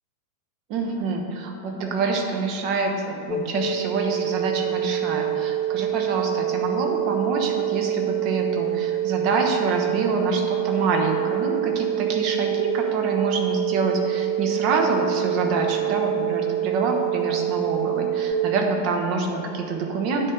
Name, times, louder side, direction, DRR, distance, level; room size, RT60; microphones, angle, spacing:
voice 1, 0.7-20.3, right 3 dB, 40° right, 2 dB, 1.0 m, -26 dB
sound 1, 3.3-18.3, right 11 dB, 20° left, 0.8 m, -26 dB
9.7 x 4.4 x 5.1 m, 2.8 s
figure-of-eight pair, 90°, 0 cm